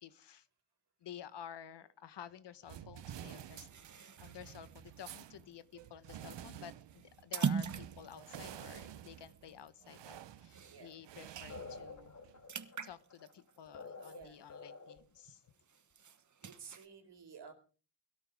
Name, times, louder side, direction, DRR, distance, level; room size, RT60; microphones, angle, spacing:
voice 1, 0.0-0.5 1.0-3.7 3.9-12.2 12.8-15.4, left 9 dB, 75° left, 14 dB, 1.1 m, -52 dB
sound 1, 2.7-12.5, right 11 dB, 85° right, 0.9 m, -51 dB
sound 2, 3.1-11.1 11.5-11.6 11.9-14.9 15.3-16.9, right 6 dB, 45° right, 1.2 m, -43 dB
sound 3, 11.5-15.2, left 4 dB, 45° left, 3.8 m, -49 dB
voice 2, 14.1-14.4 16.4-17.5, right 6 dB, 70° right, 6 dB, 4.1 m, -53 dB
22.0 x 13.0 x 3.5 m, 0.37 s
wide cardioid pair, 115°, 42 cm